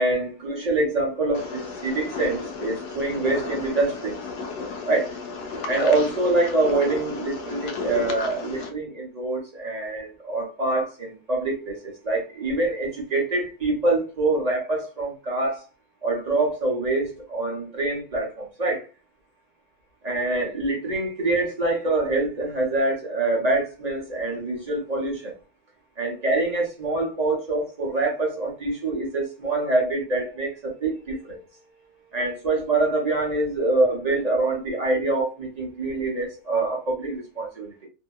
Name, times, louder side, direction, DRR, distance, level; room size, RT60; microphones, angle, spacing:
voice 1, 0.0-4.2 4.9-5.2 5.7-15.6 16.0-18.8 20.0-25.3 26.0-31.4 32.1-37.9, right 2 dB, 35° right, 0.6 m, -25 dB
sound 1, 1.3-8.7, left 4 dB, 75° left, 1.1 m, -34 dB
2.8 x 2.7 x 2.2 m
omnidirectional pair, 1.8 m